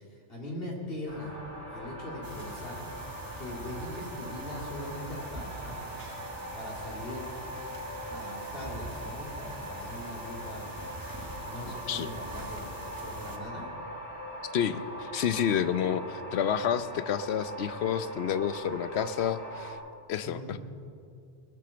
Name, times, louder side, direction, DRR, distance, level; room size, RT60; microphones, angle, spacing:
voice 1, 0.1-1.4 1.7-2.9 3.4-5.8 6.5-7.3 8.1-10.7 11.5-12.7 13.0-13.7 20.2-20.6, left 1 dB, 55° left, -3 dB, 2.6 m, -41 dB
sound 1, 1.1-19.7, equal, 40° left, 2.8 m, -41 dB
sound 2, 2.2-13.4, right 1 dB, 20° right, 1.3 m, -45 dB
voice 2, 14.5-19.8 20.1-20.6, left 8 dB, 70° left, 12 dB, 0.9 m, -29 dB
20.0 x 8.4 x 7.0 m, 2.4 s
omnidirectional pair, 1.2 m